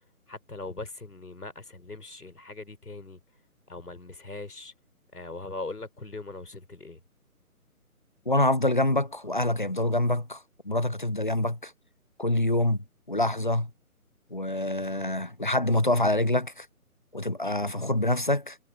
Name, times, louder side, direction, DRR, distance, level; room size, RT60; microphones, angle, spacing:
voice 1, 0.3-3.2 3.7-4.7 5.1-7.0, left 3 dB, 85° left, 4.9 m, -40 dB
voice 2, 8.3-11.7 12.2-12.8 13.1-13.7 14.3-16.7 17.1-18.6, left 1 dB, 35° left, 0.5 m, -26 dB
figure-of-eight pair, 155°, 45 cm